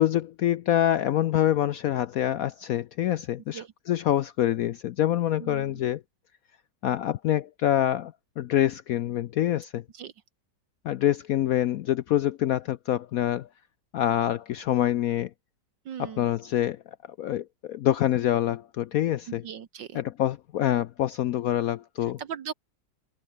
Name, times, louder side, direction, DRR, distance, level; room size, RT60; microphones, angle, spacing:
voice 1, 0.0-6.0 6.8-9.8 10.8-13.5 13.9-15.3 16.0-16.8 17.2-19.4 19.9-22.2, left 12 dB, 70° left, 0.8 m, -26 dB
voice 2, 5.4-5.8 9.9-10.1 15.9-16.3 19.4-20.0 22.2-22.5, right 9 dB, 80° right, 1.9 m, -38 dB
omnidirectional pair, 2.0 m